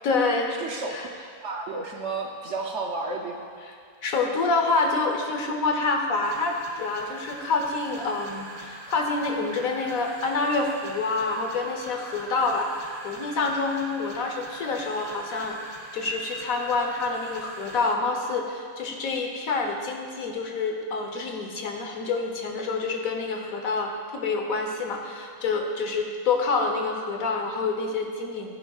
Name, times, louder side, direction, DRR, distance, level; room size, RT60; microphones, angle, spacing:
voice 1, 0.0-0.5 0.9-1.1 3.6-3.7 4.0-28.5, left 3 dB, 65° left, 3 dB, 1.3 m, -27 dB
voice 2, 0.6-3.5, right 3 dB, 55° right, 1 dB, 0.9 m, -32 dB
sound 1, 6.2-17.9, right 1 dB, 25° right, 0.5 m, -43 dB
14.5 x 9.9 x 2.4 m, 2.2 s
omnidirectional pair, 1.6 m